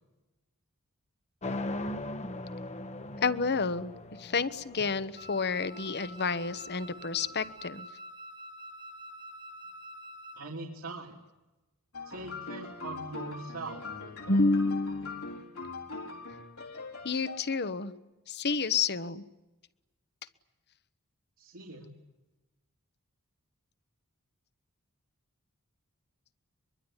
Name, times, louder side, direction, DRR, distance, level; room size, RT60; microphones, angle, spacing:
sound 1, 1.4-7.5, left 2 dB, 30° left, 1.3 m, -40 dB
voice 1, 3.2-3.9 4.2-7.9 14.3-15.4 17.0-17.9 18.3-19.2, left 4 dB, 50° left, 14 dB, 1.2 m, -29 dB
Wind instrument woodwind instrument, 5.2-10.5, equal, 20° right, 1.3 m, -47 dB
voice 2, 10.4-11.2 12.0-14.4 21.4-21.9, right 2 dB, 75° right, -1 dB, 3.3 m, -42 dB
sound 2, 11.9-17.7, left 3 dB, 80° left, 4.2 m, -42 dB
23.5 x 23.0 x 9.9 m, 1.0 s
head